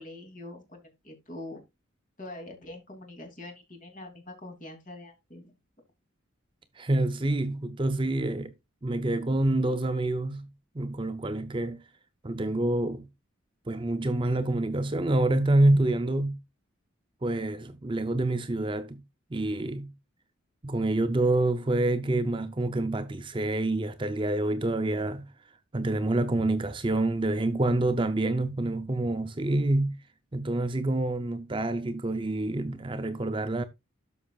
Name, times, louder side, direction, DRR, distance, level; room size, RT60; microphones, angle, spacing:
voice 1, 0.0-1.6 2.2-5.5, left 2 dB, 40° left, 2.8 m, -44 dB
voice 2, 6.8-8.5 8.8-10.5 10.7-11.8 12.2-13.1 13.7-16.4 17.2-19.0 19.3-19.9 20.6-25.3 25.7-29.9 30.3-33.6, right 2 dB, 25° right, 0.5 m, -27 dB
12.5 x 5.7 x 2.3 m
head